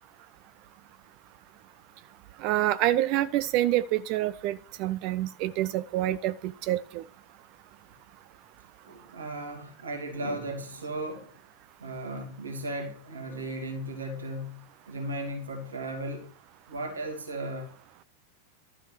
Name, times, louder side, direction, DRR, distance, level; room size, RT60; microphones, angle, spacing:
voice 1, 2.4-7.0, right 14 dB, 40° right, 0.5 m, -27 dB
voice 2, 8.8-11.4 11.8-16.3 16.7-17.7, right 1 dB, 75° right, 2.7 m, -36 dB
13.0 x 7.4 x 6.3 m
figure-of-eight pair, 90°, 0 cm